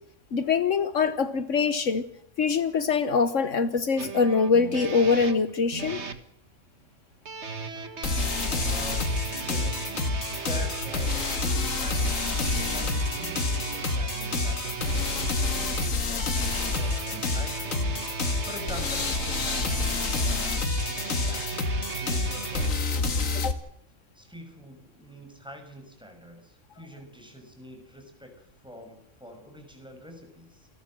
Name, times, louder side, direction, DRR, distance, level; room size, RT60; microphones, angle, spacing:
voice 1, 0.3-2.0 2.4-6.0 23.4-23.5, left 5 dB, 70° left, 12 dB, 1.5 m, -24 dB
sound 1, 4.0-6.2 7.2-22.7, right 5 dB, 60° right, 1.9 m, -36 dB
sound 2, 8.0-23.5, left 3 dB, 90° left, 2.3 m, -28 dB
voice 2, 8.6-9.1 9.4-9.8 10.2-23.5 24.1-30.7, equal, 5° right, 4 dB, 6.2 m, -45 dB
sound 3, 9.3-10.2 11.1-14.6, right 4 dB, 35° right, 2.9 m, -45 dB
28.5 x 14.0 x 7.6 m, 0.78 s
omnidirectional pair, 1.3 m